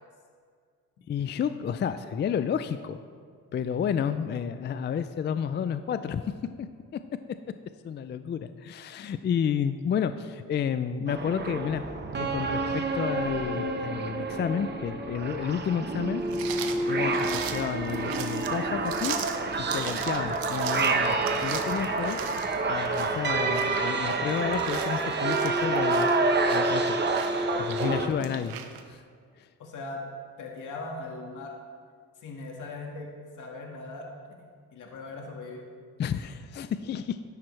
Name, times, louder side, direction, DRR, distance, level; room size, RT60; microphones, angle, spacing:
voice 1, 1.1-3.0 3.5-6.7 6.9-7.0 7.8-11.8 12.2-16.2 16.9-19.2 19.6-22.2 22.7-26.1 26.5-26.9 27.6-28.6 28.9-29.0 29.4-29.5 36.0-37.2, left 8 dB, 30° left, 11 dB, 0.4 m, -31 dB
sound 1, 11.1-28.1, right 3 dB, 30° right, 1.0 m, -28 dB
sound 2, 16.3-28.8, right 8 dB, 80° right, 1.0 m, -39 dB
voice 2, 29.6-30.0 30.4-31.5 32.2-33.1 33.4-34.1 34.4-35.6, left 3 dB, 60° left, 0 dB, 1.8 m, -39 dB
13.5 x 10.5 x 3.2 m, 2.1 s
cardioid pair, 100°, 35 cm